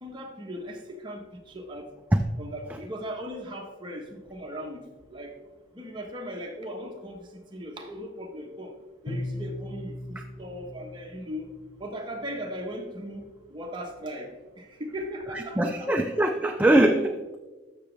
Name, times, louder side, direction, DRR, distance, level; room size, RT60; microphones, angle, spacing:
voice 1, 0.0-1.9 2.4-5.3 5.7-8.7 9.0-15.9, equal, 25° right, 1 dB, 1.2 m, -38 dB
Bowed string instrument, 9.1-11.9, left 1 dB, 35° left, 0.6 m, -38 dB
voice 2, 15.3-17.4, right 1 dB, 10° right, 4 dB, 0.3 m, -22 dB
13.5 x 6.1 x 3.3 m, 1.3 s
head